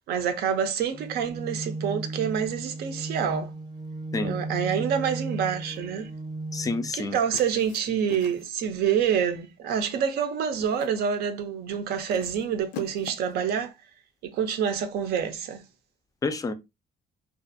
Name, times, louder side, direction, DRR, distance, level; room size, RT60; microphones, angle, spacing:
voice 1, 0.1-3.5 4.2-6.1 6.9-13.7 14.2-15.6, right 7 dB, 70° right, 0.5 m, -27 dB
sound 1, 0.9-6.9, right 2 dB, 25° right, 0.6 m, -35 dB
sound 2, 5.5-5.9 7.3-8.7 9.7-10.0 10.4-11.0 12.1-13.4, left 7 dB, 90° left, 0.4 m, -44 dB
voice 2, 6.5-7.2 16.2-16.5, left 3 dB, 20° left, 0.4 m, -29 dB
2.5 x 2.3 x 2.5 m
cardioid pair, 110°, 17 cm